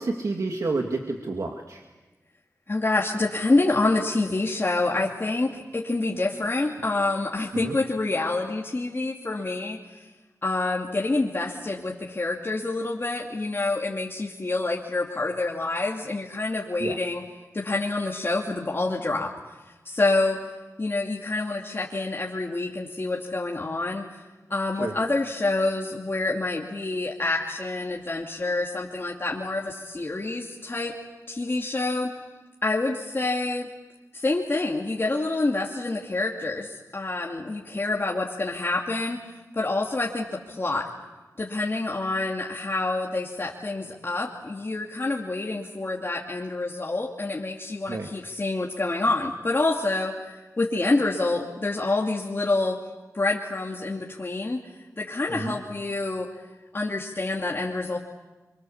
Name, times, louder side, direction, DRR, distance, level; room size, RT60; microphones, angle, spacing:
voice 1, 0.0-1.8 7.6-7.7 16.8-17.0 24.8-24.9 47.9-48.1 55.3-55.5, right 3 dB, 65° right, 2 dB, 2.2 m, -29 dB
voice 2, 2.7-10.0 10.4-17.2 17.5-19.3 19.8-20.4 20.8-24.1 24.5-30.9 31.3-32.1 32.6-33.7 34.1-40.9 41.4-52.8 53.1-54.6 55.0-56.3 56.7-58.0, left 2 dB, 40° left, -2 dB, 2.6 m, -27 dB
29.5 x 24.5 x 7.3 m, 1.1 s
wide cardioid pair, 80°, 6 cm